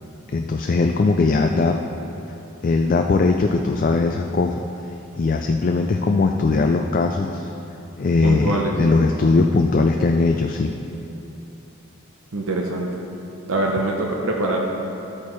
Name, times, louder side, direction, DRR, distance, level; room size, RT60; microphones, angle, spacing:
voice 1, 0.3-1.8 2.6-4.6 5.2-7.5 8.0-10.7, left 3 dB, 40° left, 4 dB, 0.3 m, -19 dB
voice 2, 8.2-8.7 12.3-13.0 13.5-14.7, right 2 dB, 80° right, -1 dB, 0.8 m, -23 dB
12.5 x 8.7 x 3.1 m, 3.0 s
head